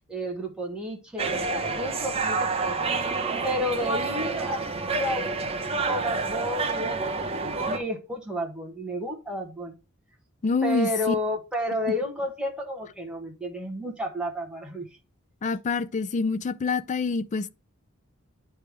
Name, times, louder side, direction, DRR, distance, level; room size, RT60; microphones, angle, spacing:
voice 1, 0.1-2.9 3.4-9.8 10.6-14.9, equal, 5° right, 1.2 m, -32 dB
sound 1, 1.2-7.8, right 4 dB, 30° right, 0.8 m, -28 dB
voice 2, 10.4-11.1 15.4-17.5, left 4 dB, 35° left, 0.4 m, -26 dB
9.6 x 3.4 x 3.3 m
head